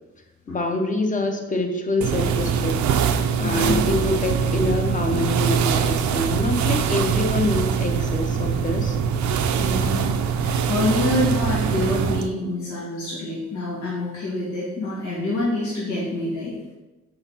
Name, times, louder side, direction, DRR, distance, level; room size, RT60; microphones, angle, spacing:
voice 1, 0.5-2.8 3.4-9.0, left 2 dB, 25° left, 4 dB, 0.7 m, -25 dB
sound 1, 2.0-12.3, right 7 dB, 75° right, 0.5 m, -23 dB
voice 2, 3.4-3.8 9.6-16.5, left 2 dB, 85° left, -7 dB, 2.0 m, -26 dB
5.0 x 4.0 x 5.6 m, 1.1 s
wide cardioid pair, 145°, 29 cm